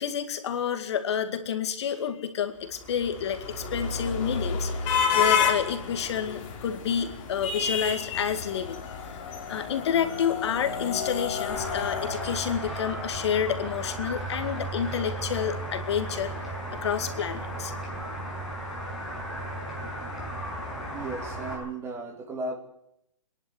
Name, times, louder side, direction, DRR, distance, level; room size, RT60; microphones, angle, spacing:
voice 1, 0.0-9.2 9.5-16.3 16.8-17.7, left 8 dB, 55° left, 8 dB, 2.1 m, -29 dB
sound 1, 2.8-13.1, left 6 dB, 30° left, 3.7 m, -30 dB
sound 2, 11.5-21.5, right 1 dB, ahead, 6.8 m, -35 dB
voice 2, 20.9-22.6, right 3 dB, 15° right, 3 dB, 2.9 m, -35 dB
25.0 x 11.0 x 9.6 m, 0.77 s
hypercardioid pair, 145°, 16 cm